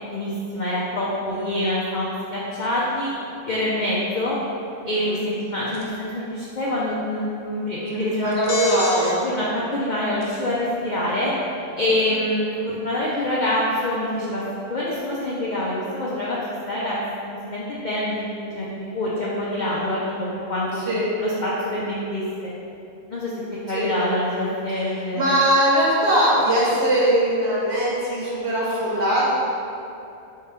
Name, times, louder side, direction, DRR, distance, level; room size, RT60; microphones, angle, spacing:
voice 1, 0.0-3.1 3.5-4.4 4.9-8.4 9.2-11.3 11.8-14.4 14.7-16.4 16.7-17.0 17.3-18.7 18.9-20.8 21.2-22.5 23.1-23.4 23.7-25.4, left 1 dB, 60° left, -7 dB, 0.5 m, -26 dB
voice 2, 1.3-1.7 4.9-5.2 7.9-9.2 12.0-12.1 20.7-21.1 23.7-23.9 24.7-29.3, right 1 dB, 55° right, -6 dB, 1.2 m, -21 dB
sound 1, 5.7-6.0 8.3-9.1 9.7-9.9 10.2-10.6, left 2 dB, 90° left, 1.2 m, -29 dB
3.3 x 3.0 x 4.6 m, 2.7 s
omnidirectional pair, 1.4 m